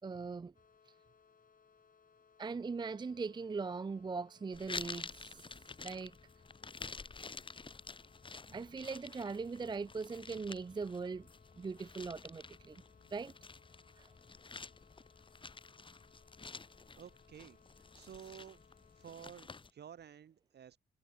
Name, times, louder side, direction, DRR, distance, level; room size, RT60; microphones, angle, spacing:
voice 1, 0.0-0.5 2.4-5.5 5.8-6.2 8.5-11.3 11.6-12.8 13.1-13.3 14.0-14.1, right 4 dB, 20° right, 0.6 m, -40 dB
sound 1, 0.5-19.3, left 6 dB, 45° left, 3.5 m, -67 dB
sound 2, 4.5-19.7, left 4 dB, 25° left, 1.6 m, -50 dB
Thunder, 12.0-16.5 17.2-17.7 18.0-18.1, left 13 dB, 80° left, 7.1 m, -80 dB
voice 2, 17.0-17.6 17.9-18.6 19.0-20.8, right 8 dB, 55° right, 3.1 m, -52 dB
cardioid pair, 90°, 20 cm